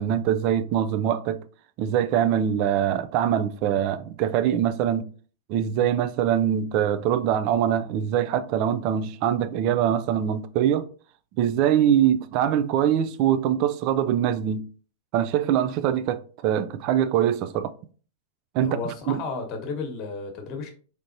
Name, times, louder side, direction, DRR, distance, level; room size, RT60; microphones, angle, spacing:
voice 1, 0.0-1.4 1.8-5.1 5.5-10.9 11.4-14.6 15.1-17.7 18.5-18.8 19.1-19.2, right 10 dB, 50° right, 0.4 m, -23 dB
voice 2, 18.6-20.7, left 4 dB, 40° left, 1.1 m, -33 dB
4.1 x 3.3 x 2.6 m
hypercardioid pair, 120°, 0 cm